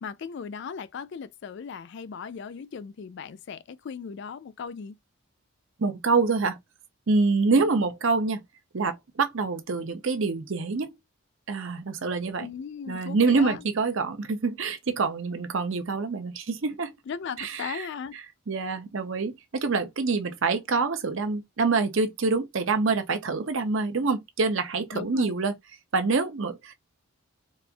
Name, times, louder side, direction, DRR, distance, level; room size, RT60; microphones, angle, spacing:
voice 1, 0.0-5.0 12.4-13.6 17.1-18.2 24.9-25.3, left 6 dB, 55° left, 0.3 m, -37 dB
voice 2, 5.8-6.6 7.1-8.4 8.7-10.9 11.5-12.5 12.9-16.9 17.4-17.9 18.5-25.5 25.9-26.7, right 4 dB, 60° right, 0.6 m, -26 dB
4.2 x 2.4 x 2.3 m
head